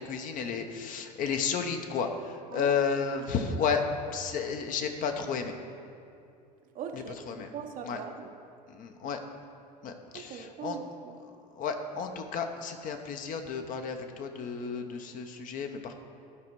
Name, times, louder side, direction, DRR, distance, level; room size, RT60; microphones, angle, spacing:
voice 1, 0.0-5.6 6.9-7.5 7.8-8.0 8.7-9.2 9.8-10.8 11.6-15.9, left 5 dB, 40° left, 5 dB, 0.8 m, -32 dB
voice 2, 6.7-8.3 10.1-11.2, right 7 dB, 40° right, 5 dB, 0.8 m, -41 dB
12.5 x 5.1 x 4.6 m, 2.5 s
figure-of-eight pair, 70°, 21 cm